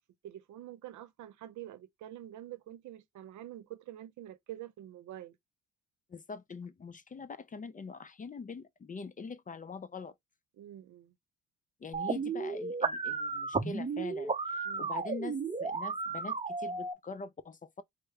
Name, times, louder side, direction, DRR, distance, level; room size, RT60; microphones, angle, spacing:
voice 1, 0.2-5.4 10.6-11.1 14.6-14.9, right 12 dB, 75° right, 0.7 m, -47 dB
voice 2, 6.1-10.1 11.8-17.8, left 4 dB, 25° left, 0.5 m, -44 dB
sound 1, 11.9-16.9, right 4 dB, 20° right, 0.7 m, -34 dB
4.6 x 2.1 x 3.2 m
cardioid pair, 90°, 30 cm